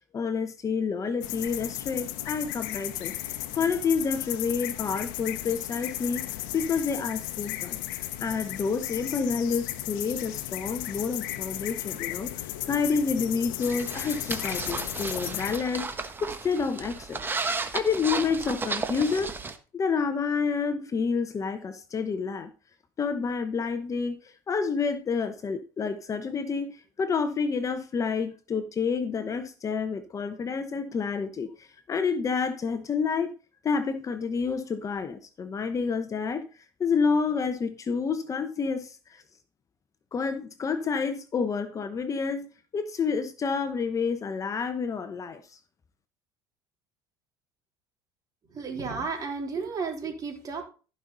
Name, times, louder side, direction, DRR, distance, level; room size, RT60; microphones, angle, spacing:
voice 1, 0.1-7.8 8.2-15.9 16.2-19.4 19.7-22.5 23.0-33.3 33.6-36.5 36.8-39.2 40.1-42.5 42.7-45.6, left 5 dB, 30° left, 1.0 m, -29 dB
sound 1, 1.2-15.6, left 14 dB, 80° left, 0.9 m, -35 dB
sound 2, 13.6-19.6, right 4 dB, 20° right, 1.3 m, -34 dB
voice 2, 48.5-50.6, right 4 dB, 35° right, 3.6 m, -33 dB
14.5 x 5.6 x 4.0 m
supercardioid pair, 95°, 10 cm